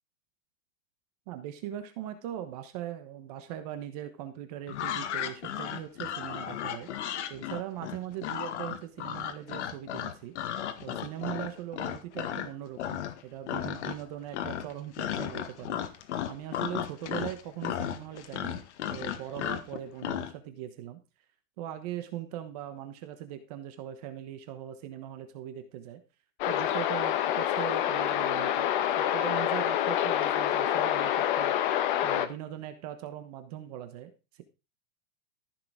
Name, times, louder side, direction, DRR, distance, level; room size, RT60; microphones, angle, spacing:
voice 1, 1.3-6.9 7.3-10.3 10.8-15.8 16.3-18.6 18.9-21.0 21.6-26.0 26.5-28.7 29.0-34.4, right 12 dB, 30° right, 9 dB, 1.1 m, -40 dB
sound 1, 4.7-12.5 12.8-13.2 13.5-14.1 14.3-20.3, left 10 dB, 55° left, 1.8 m, -34 dB
sound 2, 26.4-32.3, left 11 dB, 35° left, 1.3 m, -27 dB
14.5 x 6.9 x 4.9 m, 0.29 s
supercardioid pair, 180°, 42 cm